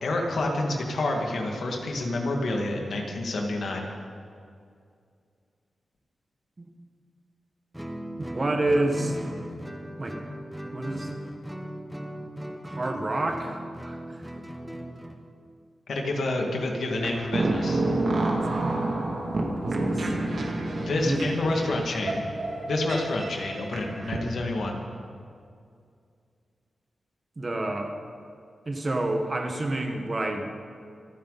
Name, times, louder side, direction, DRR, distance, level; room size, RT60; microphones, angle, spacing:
voice 1, 0.0-3.9 15.9-17.8 20.8-22.2 22.7-24.8, left 2 dB, 70° left, 1 dB, 2.3 m, -28 dB
Guitar, 7.7-15.2, right 1 dB, 5° right, 1.2 m, -38 dB
voice 2, 8.2-9.2 10.0-10.2 10.7-11.1 12.6-14.2 18.5-18.8 19.6-20.1 21.0-21.2 27.4-27.9 28.6-30.5, right 2 dB, 30° right, 3 dB, 1.6 m, -29 dB
sound 1, 16.9-24.2, right 2 dB, 65° right, 2.7 m, -29 dB
27.0 x 10.0 x 4.2 m, 2.3 s
wide cardioid pair, 135°, 0 cm